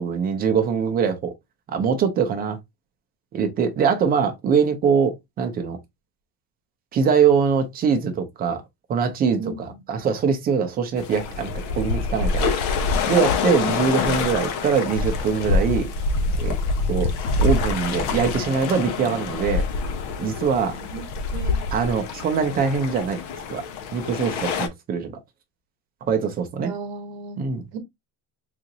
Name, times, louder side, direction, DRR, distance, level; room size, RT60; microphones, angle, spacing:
voice 1, 0.0-1.3 1.7-2.6 3.3-5.8 6.9-8.6 8.9-12.5 13.1-15.9 16.4-16.6 16.9-17.1 17.4-19.7 20.2-20.8 21.7-23.2 23.5-23.6 23.9-25.1 26.0-26.7 27.4-27.7, right 6 dB, 20° right, 0.6 m, -23 dB
sound 1, 11.0-24.7, left 4 dB, 85° left, 0.9 m, -26 dB
voice 2, 20.7-21.1 21.3-21.6 26.6-27.4 27.7-27.8, right 4 dB, 55° right, 1.1 m, -34 dB
3.9 x 2.5 x 2.8 m
cardioid pair, 175°, 42 cm